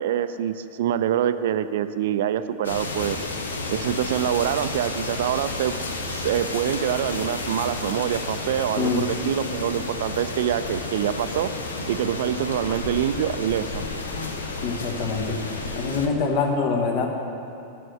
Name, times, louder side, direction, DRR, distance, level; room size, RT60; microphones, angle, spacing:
voice 1, 0.0-3.2 3.7-5.7 6.1-11.5 11.8-13.8, right 10 dB, 55° right, 12 dB, 0.4 m, -25 dB
sound 1, 2.6-16.1, left 3 dB, 70° left, 0.8 m, -31 dB
voice 2, 14.6-15.4 15.7-17.1, left 4 dB, 50° left, 1 dB, 1.3 m, -24 dB
7.5 x 6.5 x 7.8 m, 2.8 s
figure-of-eight pair, 90°, 0 cm